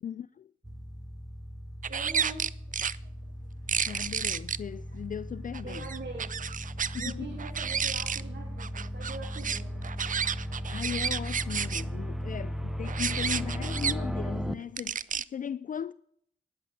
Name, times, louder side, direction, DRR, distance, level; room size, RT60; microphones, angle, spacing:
voice 1, 0.0-0.5 3.8-5.9 6.9-7.4 10.7-15.9, left 8 dB, 45° left, 0.4 m, -38 dB
sound 1, 0.6-14.5, equal, ahead, 0.7 m, -37 dB
sound 2, 1.8-3.0 3.7-4.6 5.5-7.1 7.4-8.2 8.6-11.8 12.8-13.9 14.8-15.2, right 7 dB, 45° right, 0.4 m, -31 dB
voice 2, 1.9-2.5 5.6-6.3 7.0-9.9, right 3 dB, 60° right, 2.4 m, -43 dB
10.5 x 7.0 x 7.3 m
cardioid pair, 55°, 20 cm